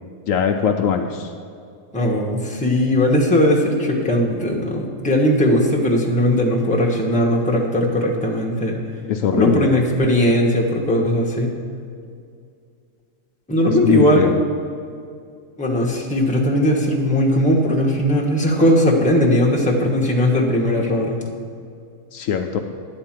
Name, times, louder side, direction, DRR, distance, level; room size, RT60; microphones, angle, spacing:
voice 1, 0.3-1.3 9.1-9.7 13.8-14.4 22.1-22.6, left 7 dB, 70° left, 5 dB, 0.9 m, -20 dB
voice 2, 1.9-8.8 9.3-11.5 13.5-14.3 15.6-21.2, equal, 5° left, -1 dB, 1.0 m, -18 dB
10.5 x 4.4 x 7.4 m, 2.3 s
omnidirectional pair, 1.5 m